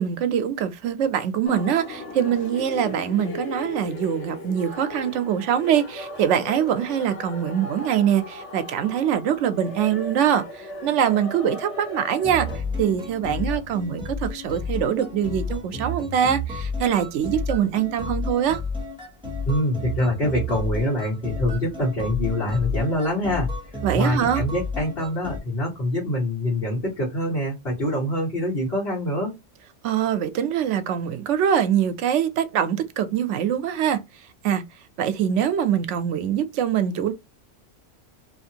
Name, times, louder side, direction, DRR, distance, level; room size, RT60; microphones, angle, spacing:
voice 1, 0.0-10.4 10.8-12.5 12.8-18.6 23.8-24.4 29.8-34.0 34.4-34.6 35.0-37.1, right 9 dB, 80° right, 0.9 m, -23 dB
sound 1, 1.4-12.6, left 1 dB, 80° left, 1.2 m, -37 dB
sound 2, 12.2-25.4, left 2 dB, 5° right, 0.9 m, -31 dB
voice 2, 19.5-29.3, left 1 dB, 55° left, 1.5 m, -25 dB
2.8 x 2.5 x 2.7 m
omnidirectional pair, 1.2 m